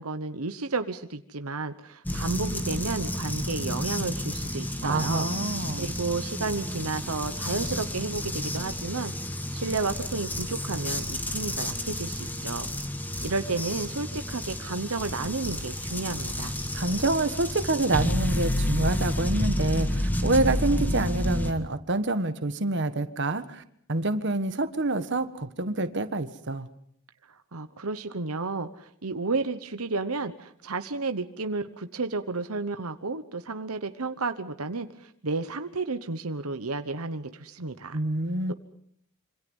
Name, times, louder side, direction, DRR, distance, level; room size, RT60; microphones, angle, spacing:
voice 1, 0.0-5.3 5.8-9.1 9.5-12.7 13.2-16.5 27.3-38.0, right 3 dB, 80° right, 9 dB, 1.1 m, -32 dB
sound 1, 2.1-21.5, left 1 dB, 10° left, 1.7 m, -30 dB
voice 2, 4.8-5.9 16.7-23.6 23.9-26.7 37.9-38.5, right 2 dB, 55° right, 10 dB, 1.4 m, -27 dB
26.5 x 25.0 x 5.5 m, 0.64 s
head